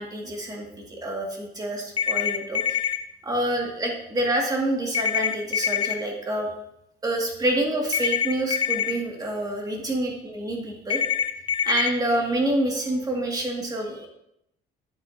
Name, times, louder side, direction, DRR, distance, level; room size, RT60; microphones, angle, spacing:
voice 1, 0.0-2.8 3.2-6.5 7.0-11.0 11.6-14.1, right 1 dB, 20° right, 0 dB, 2.2 m, -27 dB
sound 1, 2.0-3.0 4.9-5.9 7.9-8.9 10.9-11.9, left 8 dB, 30° left, 0.7 m, -24 dB
9.5 x 7.8 x 2.8 m, 0.80 s
cardioid pair, 110°, 17 cm